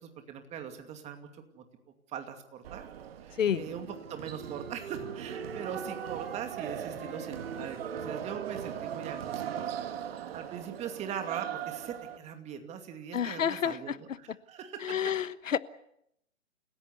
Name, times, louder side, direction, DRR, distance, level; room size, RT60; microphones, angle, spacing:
voice 1, 0.0-1.7 2.1-2.9 3.2-9.7 10.0-15.0, right 8 dB, 15° right, 6 dB, 2.5 m, -41 dB
sound 1, 2.6-12.2, right 9 dB, 45° right, 2.1 m, -39 dB
Wind instrument woodwind instrument, 3.5-6.5 6.9-10.8, right 5 dB, 70° right, 2.9 m, -47 dB
voice 2, 13.1-14.0 14.8-15.6, left 8 dB, 65° left, 15 dB, 1.3 m, -29 dB
29.5 x 17.0 x 8.3 m, 0.78 s
hypercardioid pair, 140°, 42 cm